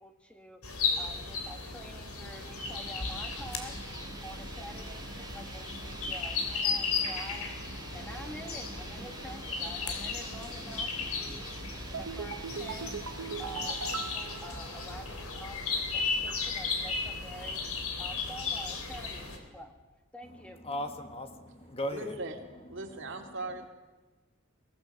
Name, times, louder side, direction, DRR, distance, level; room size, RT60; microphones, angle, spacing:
voice 1, 0.0-13.0 13.4-19.7 20.1-20.6, equal, 5° left, 5 dB, 1.5 m, -48 dB
sound 1, 0.6-19.4, left 4 dB, 90° left, 3.1 m, -35 dB
sound 2, 1.5-16.9, right 3 dB, 20° right, 1.5 m, -48 dB
sound 3, 11.9-15.4 15.6-15.7, right 6 dB, 80° right, 0.8 m, -40 dB
voice 2, 20.6-22.1, equal, 30° left, 7 dB, 1.4 m, -36 dB
voice 3, 21.9-22.4 22.7-23.7, right 2 dB, 60° right, 4 dB, 2.3 m, -39 dB
23.0 x 17.5 x 6.5 m, 1.2 s
head